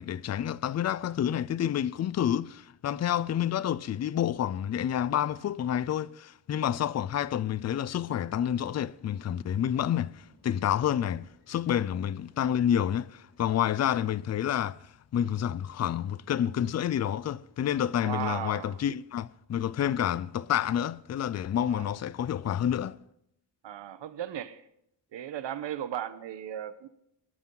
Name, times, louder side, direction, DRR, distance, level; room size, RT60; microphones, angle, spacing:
voice 1, 0.0-14.8 15.1-23.0, left 10 dB, 40° left, 0.4 m, -29 dB
sound 1, 7.9-15.7, left 2 dB, 65° left, 6.1 m, -65 dB
voice 2, 18.0-18.8 21.7-22.0 23.6-24.6 25.1-26.9, right 10 dB, 75° right, 1.1 m, -36 dB
20.5 x 12.0 x 3.9 m
wide cardioid pair, 165°, 44 cm